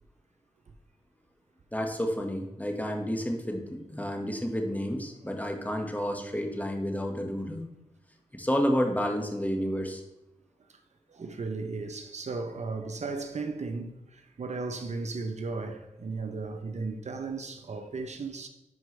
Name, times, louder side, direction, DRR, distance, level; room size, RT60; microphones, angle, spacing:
voice 1, 1.7-7.6 8.3-10.0, equal, 10° left, 1.5 m, -30 dB
voice 2, 11.1-18.5, right 3 dB, 60° right, 0.8 m, -35 dB
11.0 x 4.5 x 3.2 m
cardioid pair, 45°, 13 cm